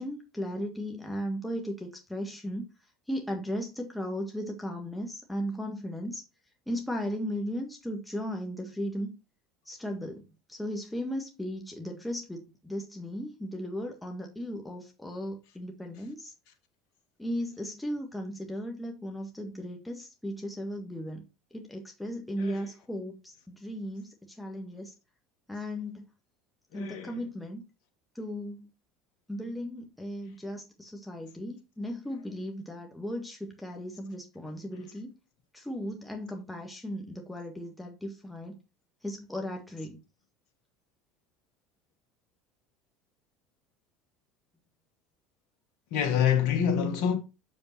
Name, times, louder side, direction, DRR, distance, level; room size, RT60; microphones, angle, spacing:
voice 1, 0.0-2.6 3.1-6.2 6.7-9.1 9.6-16.3 17.2-21.2 21.5-24.9 25.5-26.0 26.7-27.6 28.1-28.7 29.3-35.1 35.5-38.6 39.0-40.0, equal, 5° left, 1.6 m, -36 dB
voice 2, 26.7-27.1 45.9-47.2, left 8 dB, 65° left, 1.3 m, -26 dB
7.0 x 5.3 x 4.3 m
hypercardioid pair, 75°, 0 cm